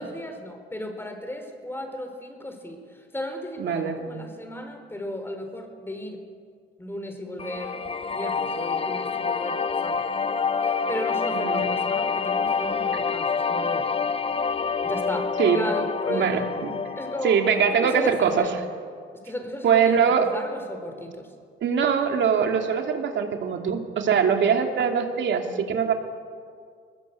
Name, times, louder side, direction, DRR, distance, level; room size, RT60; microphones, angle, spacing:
voice 1, 0.0-6.2 6.8-7.8 8.1-10.2 10.6-14.1 14.8-16.4 17.0-17.4 17.7-18.5 19.1-21.3, left 1 dB, 10° left, 5 dB, 4.3 m, -35 dB
voice 2, 3.6-4.1 11.3-11.7 15.4-15.6 16.1-16.7 17.2-18.5 19.6-20.3 21.6-25.9, right 7 dB, 70° right, 4 dB, 2.8 m, -22 dB
sound 1, 7.4-18.5, left 5 dB, 30° left, 0.9 m, -27 dB
21.0 x 20.5 x 8.3 m, 2.1 s
cardioid pair, 90°, 20 cm